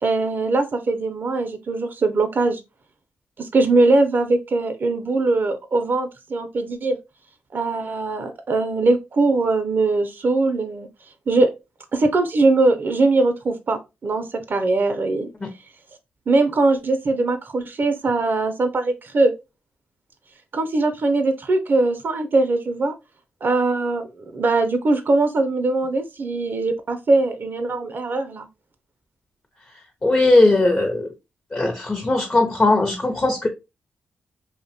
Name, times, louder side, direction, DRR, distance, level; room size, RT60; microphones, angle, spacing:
voice 1, 0.0-2.6 3.4-7.0 7.5-10.9 11.3-11.5 11.9-15.3 16.3-19.3 20.5-22.9 23.4-24.1 24.3-28.5, right 3 dB, 50° right, 0.4 m, -21 dB
voice 2, 30.0-31.1 31.5-33.5, left 2 dB, 35° left, 0.6 m, -18 dB
2.5 x 2.1 x 2.6 m
supercardioid pair, 45°, 4 cm